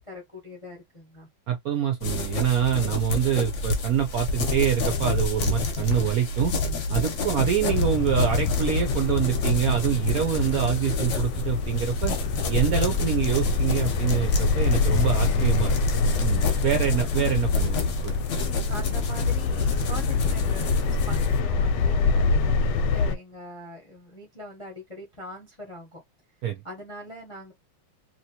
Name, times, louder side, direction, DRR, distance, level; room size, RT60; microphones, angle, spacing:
voice 1, 0.1-1.3 18.7-26.0 26.6-27.5, left 1 dB, 30° left, 0.5 m, -42 dB
voice 2, 1.5-6.5 6.9-12.1 12.5-15.8 16.2-18.2 18.6-18.7 26.4-26.6, right 10 dB, 70° right, 0.9 m, -25 dB
sound 1, 2.0-21.4, left 3 dB, 60° left, 0.8 m, -29 dB
sound 2, 7.7-23.2, left 4 dB, 75° left, 1.1 m, -25 dB
2.9 x 2.8 x 2.8 m
omnidirectional pair, 2.2 m